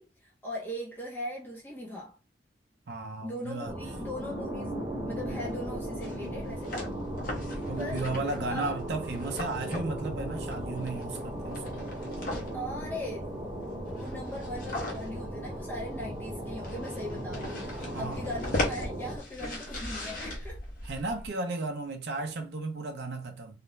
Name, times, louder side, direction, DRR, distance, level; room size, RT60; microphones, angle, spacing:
voice 1, 0.0-2.2 3.2-6.9 7.8-8.1 8.5-8.7 12.5-13.3 13.9-20.6, equal, 10° left, 0.6 m, -39 dB
voice 2, 2.9-3.7 7.7-11.8 17.7-18.2 20.8-23.6, right 3 dB, 60° right, 0.5 m, -35 dB
sound 1, 3.6-19.2, right 1 dB, 15° right, 0.9 m, -37 dB
sound 2, 5.3-21.3, left 1 dB, 50° left, 0.8 m, -39 dB
2.4 x 2.1 x 3.0 m
head